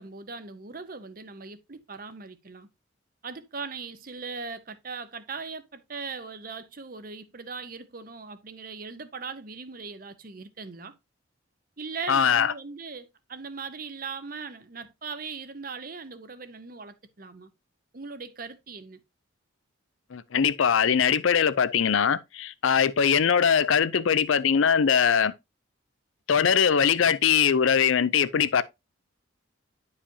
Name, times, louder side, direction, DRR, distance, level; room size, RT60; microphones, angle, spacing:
voice 1, 0.0-2.7 3.2-10.9 11.8-17.5 17.9-19.0, right 4 dB, 45° right, 0.8 m, -39 dB
voice 2, 12.1-12.5 20.1-25.3 26.3-28.6, left 7 dB, 75° left, 0.5 m, -22 dB
10.0 x 4.9 x 2.8 m
head